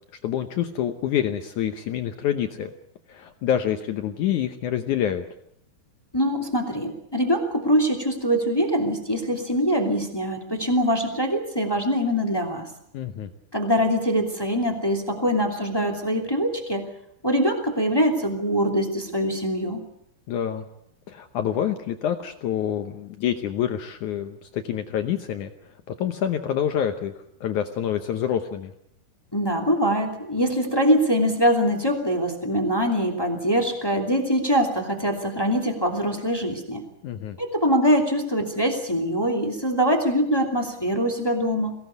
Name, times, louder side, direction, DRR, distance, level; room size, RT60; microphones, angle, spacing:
voice 1, 0.2-2.7 3.1-5.3 12.9-13.3 20.3-20.6 21.1-25.5 26.0-27.1 27.4-28.7 37.0-37.4, left 10 dB, 70° left, 7 dB, 1.9 m, -27 dB
voice 2, 6.1-12.6 13.5-16.8 17.2-19.8 29.3-36.8 37.4-41.7, equal, 10° left, 2 dB, 1.8 m, -23 dB
23.0 x 17.5 x 8.2 m, 0.77 s
omnidirectional pair, 4.6 m